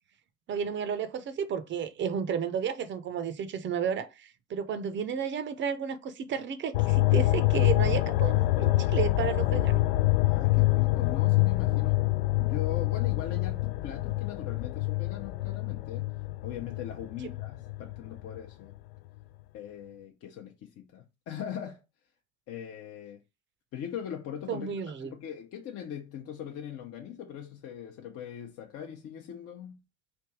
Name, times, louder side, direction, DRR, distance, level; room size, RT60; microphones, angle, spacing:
voice 1, 0.5-9.8 24.5-25.1, right 7 dB, 30° right, 0.7 m, -32 dB
sound 1, 6.7-18.4 18.7-18.8, left 18 dB, 60° left, 0.4 m, -26 dB
voice 2, 10.2-12.1 12.4-16.1 16.4-18.8 19.5-21.8 22.5-23.2 23.7-29.8, left 9 dB, 40° left, 0.8 m, -40 dB
3.4 x 2.7 x 4.6 m
hypercardioid pair, 85°, 36 cm